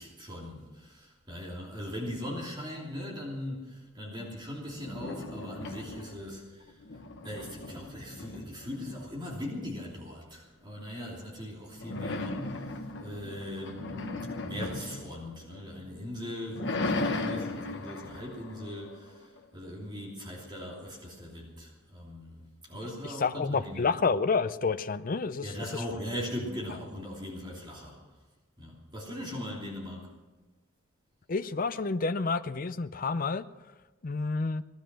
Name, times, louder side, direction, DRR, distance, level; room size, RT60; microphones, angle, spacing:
voice 1, 0.0-6.8 7.2-23.9 25.4-28.0 28.6-30.1, left 1 dB, 20° right, -3 dB, 3.0 m, -40 dB
sound 1, 4.7-6.3 6.7-9.4 11.8-15.9 16.3-19.4, left 2 dB, 60° left, 1.2 m, -37 dB
voice 2, 23.0-25.8 31.3-33.4 34.0-34.6, left 4 dB, 45° left, 13 dB, 0.5 m, -29 dB
18.0 x 12.5 x 6.2 m, 1.2 s
head